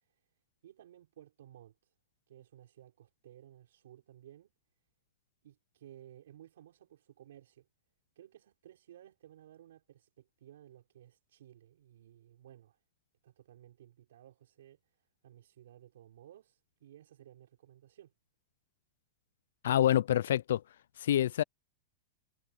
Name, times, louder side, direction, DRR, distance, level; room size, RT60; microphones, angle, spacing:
voice 1, 0.6-1.9 2.3-4.5 5.4-7.7 8.1-12.8 13.2-14.8 15.2-18.1, right 11 dB, 80° right, 5.0 m, -57 dB
voice 2, 19.6-20.6 21.0-21.4, left 11 dB, 80° left, 0.4 m, -26 dB
hypercardioid pair, 135°, 0 cm